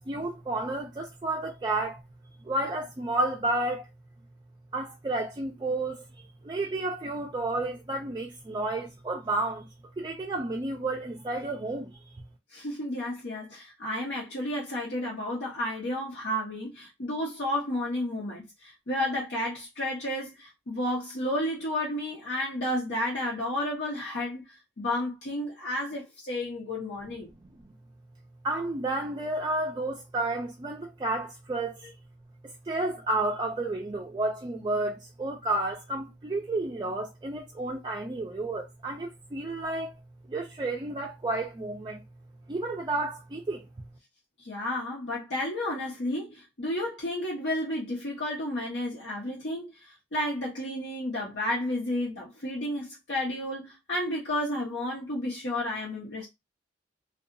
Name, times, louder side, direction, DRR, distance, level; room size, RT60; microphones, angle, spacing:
voice 1, 0.1-2.0 2.5-3.8 4.7-6.0 6.5-9.6 10.0-11.9 28.4-31.7 32.7-34.9 35.2-39.9 40.3-42.0 42.5-43.6, right 2 dB, 25° right, 0.4 m, -31 dB
voice 2, 12.5-27.3 44.4-56.3, left 1 dB, 75° left, 0.9 m, -32 dB
2.7 x 2.3 x 2.5 m
head